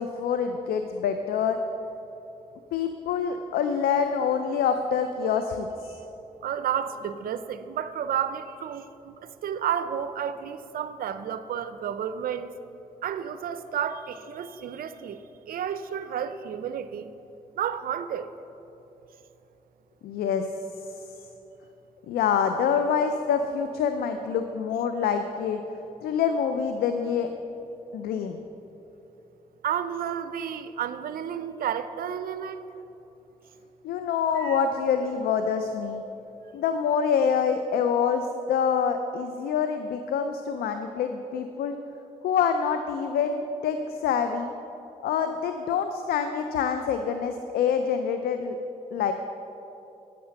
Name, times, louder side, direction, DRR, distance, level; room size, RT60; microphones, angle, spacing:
voice 1, 0.0-1.6 2.7-6.0 20.0-20.5 22.1-25.6 26.0-27.3 27.9-28.4 33.8-36.0 36.5-41.8 42.2-44.5 45.0-48.6 48.9-49.1, left 7 dB, 90° left, 7 dB, 0.4 m, -26 dB
voice 2, 6.4-12.5 13.0-17.1 17.6-18.3 29.6-32.6 34.4-34.6, right 9 dB, 75° right, 11 dB, 0.5 m, -31 dB
9.5 x 7.4 x 5.7 m, 3.0 s
supercardioid pair, 50°, 15 cm